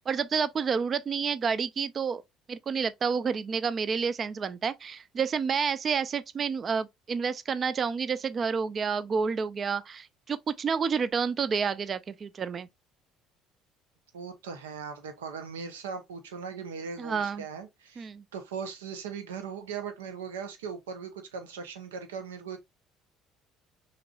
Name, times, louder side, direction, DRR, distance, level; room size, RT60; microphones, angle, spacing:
voice 1, 0.1-2.2 2.5-12.7 17.0-17.4 18.0-18.2, right 6 dB, 40° right, 0.4 m, -29 dB
voice 2, 14.1-22.6, right 6 dB, 80° right, 0.8 m, -39 dB
5.8 x 3.0 x 2.3 m
hypercardioid pair, 55°, 0 cm